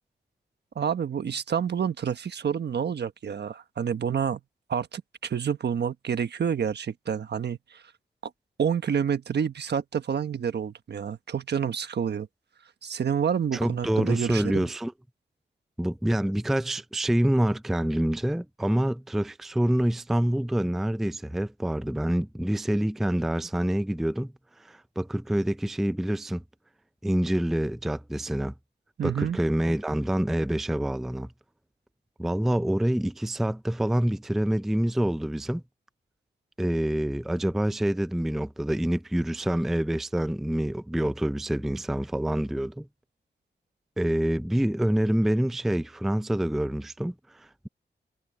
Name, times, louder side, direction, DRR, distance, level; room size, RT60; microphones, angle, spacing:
voice 1, 0.7-4.4 4.7-7.8 8.6-12.3 12.8-14.7 29.0-29.4, right 7 dB, 70° right, 1.2 m, -28 dB
voice 2, 13.5-14.9 15.8-24.3 24.6-26.4 27.0-28.5 29.0-31.3 32.2-35.6 36.6-42.9 44.0-47.7, right 1 dB, ahead, 0.4 m, -26 dB
wide cardioid pair, 125°, 18 cm